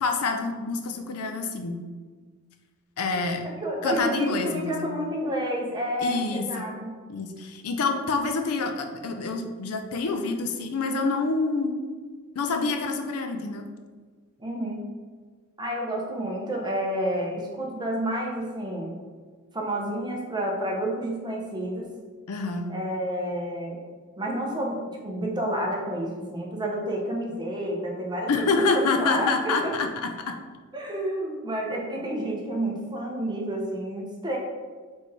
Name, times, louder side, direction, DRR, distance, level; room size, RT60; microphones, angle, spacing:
voice 1, 0.0-1.8 3.0-3.5 3.8-4.9 6.0-6.7 7.1-11.8 12.4-13.6 22.3-22.7 28.3-30.4, left 4 dB, 80° left, 5 dB, 0.5 m, -27 dB
voice 2, 3.6-6.9 14.4-14.9 15.6-19.0 19.5-21.9 22.7-23.8 24.2-29.7 30.7-34.4, right 1 dB, 20° right, -1 dB, 0.7 m, -30 dB
4.1 x 3.4 x 3.3 m, 1.5 s
head